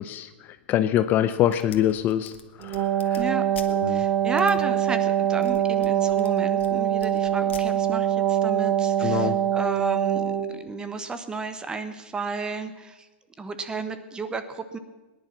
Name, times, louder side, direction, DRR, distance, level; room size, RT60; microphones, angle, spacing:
voice 1, 0.0-3.2 3.7-4.1 9.0-9.4, left 11 dB, 30° left, 12 dB, 0.6 m, -25 dB
sound 1, 1.5-3.7 4.4-4.5 5.2-6.7 7.0-7.6, left 8 dB, 75° left, 1.6 m, -45 dB
Wind instrument woodwind instrument, 2.6-10.6, right 10 dB, 45° right, 1.2 m, -24 dB
voice 2, 3.9-13.1 13.4-14.8, right 3 dB, 15° right, 10 dB, 1.1 m, -32 dB
18.5 x 10.5 x 5.9 m, 1.1 s
hypercardioid pair, 135°, 6 cm